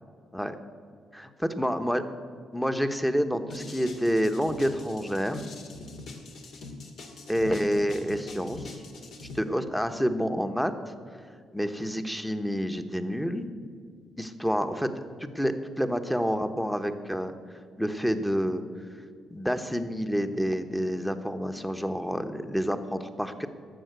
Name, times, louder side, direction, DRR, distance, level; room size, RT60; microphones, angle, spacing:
voice 1, 1.1-2.0 2.5-5.4 7.3-8.8 9.3-10.7 11.5-13.5 14.2-17.3 17.8-18.6 19.3-23.5, equal, ahead, 9 dB, 1.0 m, -28 dB
sound 1, 3.5-9.4, left 3 dB, 70° left, 2.1 m, -42 dB
12.5 x 7.3 x 9.3 m, 2.2 s
cardioid pair, 90°, 0 cm